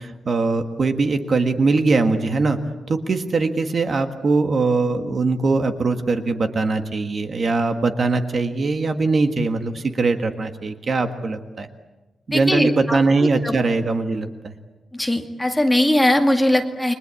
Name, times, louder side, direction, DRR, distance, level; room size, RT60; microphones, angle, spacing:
voice 1, 0.0-2.6 2.9-11.7 12.3-14.5, right 3 dB, 40° right, 7 dB, 1.6 m, -21 dB
voice 2, 12.3-13.0 13.4-13.6 14.9-16.9, left 1 dB, 5° left, 4 dB, 2.1 m, -20 dB
30.0 x 23.0 x 8.4 m, 1.1 s
wide cardioid pair, 165°, 0 cm